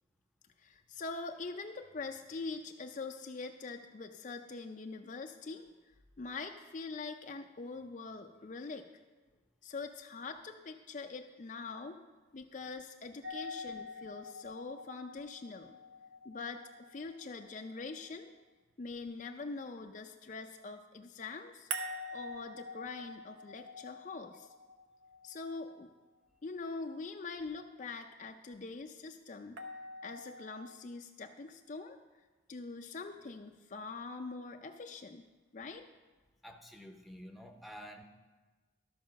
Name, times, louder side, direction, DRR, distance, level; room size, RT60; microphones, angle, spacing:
voice 1, 0.6-5.6 6.2-8.9 9.6-12.0 12.3-15.8 16.2-18.3 18.8-21.7 22.1-24.5 25.2-25.9 26.4-29.6 30.0-32.0 32.5-35.2 35.5-35.9, left 4 dB, 40° left, 5 dB, 0.4 m, -43 dB
sound 1, 13.2-18.2 21.7-25.8 29.6-30.8, equal, 70° right, 0.8 m, -46 dB
voice 2, 36.4-38.0, equal, ahead, 2 dB, 0.7 m, -49 dB
13.0 x 4.8 x 6.4 m, 1.3 s
head